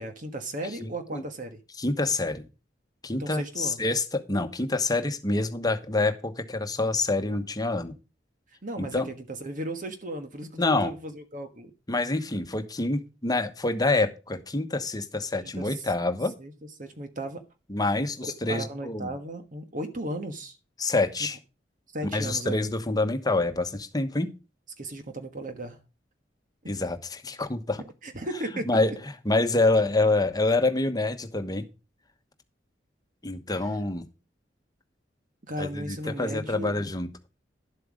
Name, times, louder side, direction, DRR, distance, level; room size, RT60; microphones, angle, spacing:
voice 1, 0.0-1.6 3.2-3.8 8.6-11.7 15.4-15.8 16.4-16.5 16.8-17.4 18.2-20.6 21.9-22.6 24.8-25.8 28.0-28.7 33.5-33.6 35.4-36.9, right 1 dB, 45° right, 1.4 m, -36 dB
voice 2, 0.8-1.2 1.8-2.5 3.0-7.9 8.8-9.1 10.6-10.9 11.9-16.3 17.7-19.1 20.8-21.4 22.1-24.3 26.7-27.8 28.7-28.9 29.2-31.7 33.2-34.1 35.6-37.1, left 2 dB, 20° left, 1.1 m, -26 dB
11.5 x 7.8 x 5.0 m
head